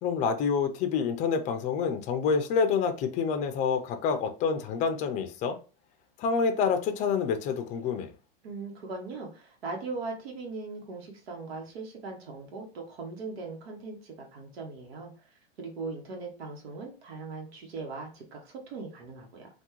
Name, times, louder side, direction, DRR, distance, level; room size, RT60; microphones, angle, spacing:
voice 1, 0.0-5.6 6.2-8.1, left 5 dB, 25° left, 7 dB, 0.4 m, -27 dB
voice 2, 8.4-15.1 15.6-19.5, right 3 dB, 90° right, 1 dB, 1.1 m, -39 dB
3.4 x 2.3 x 3.0 m, 0.33 s
supercardioid pair, 140°, 30 cm